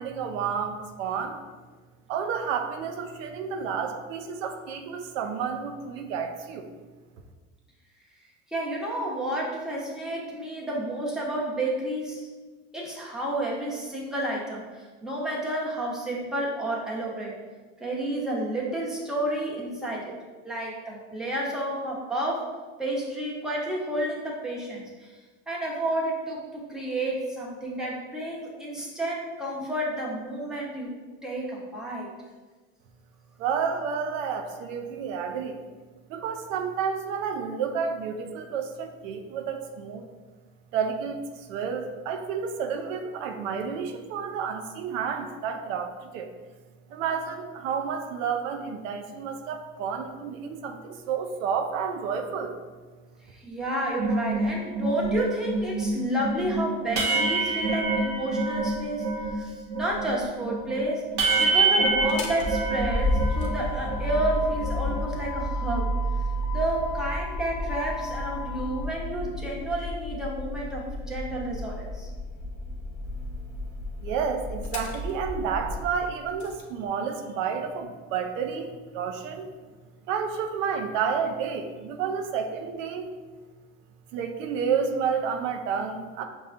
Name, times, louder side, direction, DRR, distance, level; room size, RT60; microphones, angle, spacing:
voice 1, 0.0-1.4 2.1-6.7 33.4-35.6 36.1-40.0 40.7-46.3 46.9-52.6 74.0-79.5 80.1-83.1 84.1-86.2, right 6 dB, 90° right, 4 dB, 0.5 m, -30 dB
voice 2, 8.5-12.3 12.7-17.3 17.8-20.1 20.4-22.5 22.8-25.1 25.5-30.9 31.2-32.1 53.3-61.0 61.4-65.9 66.5-72.1, right 1 dB, ahead, -5 dB, 0.9 m, -30 dB
sound 1, 54.0-59.4 59.7-63.6 63.8-65.0, right 3 dB, 50° right, 0.7 m, -27 dB
Motor vehicle (road), 61.9-76.6, left 1 dB, 50° left, 0.8 m, -31 dB
5.4 x 2.3 x 2.5 m, 1.3 s
supercardioid pair, 95°, 37 cm